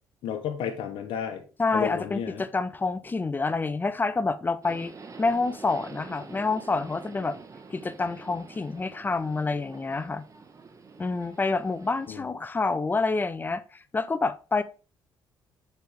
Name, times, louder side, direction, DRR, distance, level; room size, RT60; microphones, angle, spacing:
voice 1, 0.2-1.4 1.7-2.4 12.1-12.3, left 8 dB, 75° left, 0.9 m, -32 dB
voice 2, 1.6-4.9 5.2-7.4 7.7-10.2 11.0-13.6 13.9-14.6, left 3 dB, 20° left, 0.6 m, -27 dB
Subway metro underground, 4.6-12.2, right 4 dB, 35° right, 1.2 m, -47 dB
6.7 x 4.7 x 3.4 m
supercardioid pair, 75°, 9 cm